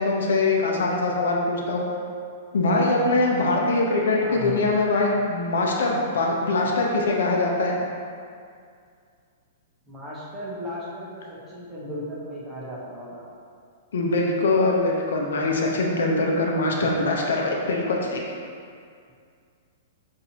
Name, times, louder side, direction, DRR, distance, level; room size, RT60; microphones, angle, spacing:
voice 1, 0.0-1.8 2.5-7.8 13.9-18.3, left 2 dB, 85° left, -1 dB, 0.7 m, -23 dB
voice 2, 4.2-4.7 9.9-13.2, equal, 10° right, -7 dB, 0.7 m, -36 dB
5.9 x 2.7 x 2.8 m, 2.3 s
hypercardioid pair, 175°, 0 cm